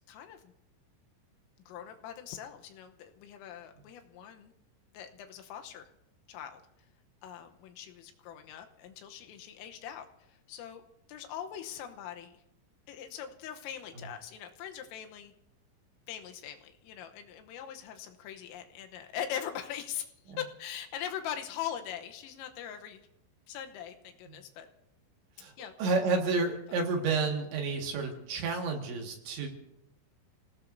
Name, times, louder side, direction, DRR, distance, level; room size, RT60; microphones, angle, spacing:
voice 1, 0.1-0.5 1.7-4.5 4.9-5.9 6.3-6.6 7.2-10.8 11.1-12.4 12.9-15.3 16.1-23.1 23.5-24.7 25.6-25.9, left 9 dB, 80° left, 5 dB, 3.5 m, -41 dB
voice 2, 25.8-29.5, right 4 dB, 65° right, 2 dB, 3.8 m, -30 dB
30.0 x 17.5 x 2.7 m, 0.86 s
omnidirectional pair, 6.0 m